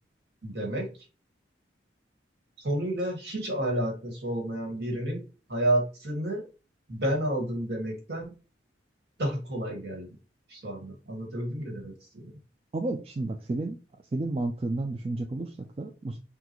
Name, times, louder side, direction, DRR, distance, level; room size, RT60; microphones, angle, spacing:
voice 1, 0.4-0.9 2.6-5.2 5.5-6.4 6.9-8.3 9.2-10.1 10.5-12.4, right 1 dB, 60° right, 1.7 m, -30 dB
voice 2, 12.7-13.8 14.1-16.2, right 2 dB, 30° right, 0.3 m, -31 dB
5.9 x 2.4 x 3.0 m
head